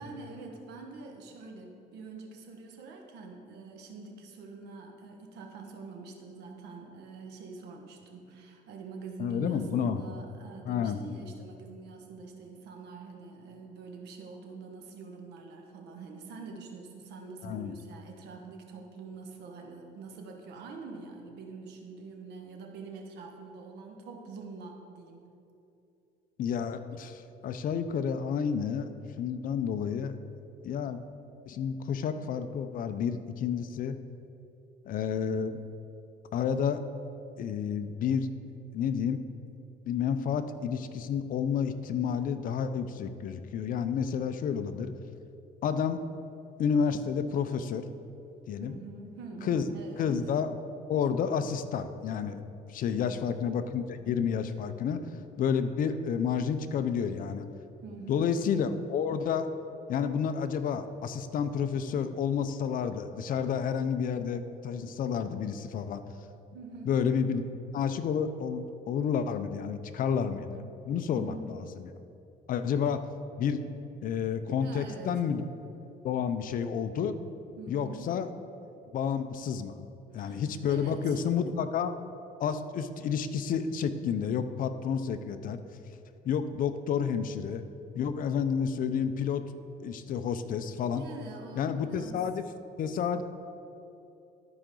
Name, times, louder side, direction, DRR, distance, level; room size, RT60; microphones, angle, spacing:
voice 1, 0.0-25.3 48.6-50.2 52.9-53.4 57.8-58.3 66.5-66.9 71.1-71.5 74.6-75.3 77.6-78.1 80.1-81.5 90.9-92.2, right 4 dB, 80° right, 2 dB, 1.2 m, -45 dB
voice 2, 9.2-10.0 10.7-11.0 17.4-17.7 26.4-28.9 29.2-30.1 30.6-31.0 31.5-33.9 34.9-35.6 36.3-36.8 37.4-38.3 38.7-39.2 39.9-44.9 45.6-46.0 46.6-47.8 48.5-48.8 49.4-49.6 50.0-50.6 50.9-52.4 52.7-55.0 55.4-57.5 58.1-59.5 59.9-66.0 66.9-67.4 67.7-71.3 71.8-71.9 72.5-73.0 73.4-73.6 74.0-75.4 76.0-77.1 77.7-78.3 78.9-79.8 80.1-82.0 82.4-85.6 86.3-87.6 88.0-89.4 89.8-91.0 91.6-92.4 92.8-93.2, left 7 dB, 55° left, 10 dB, 0.5 m, -30 dB
13.0 x 5.0 x 3.8 m, 2.7 s
cardioid pair, 110°, 17 cm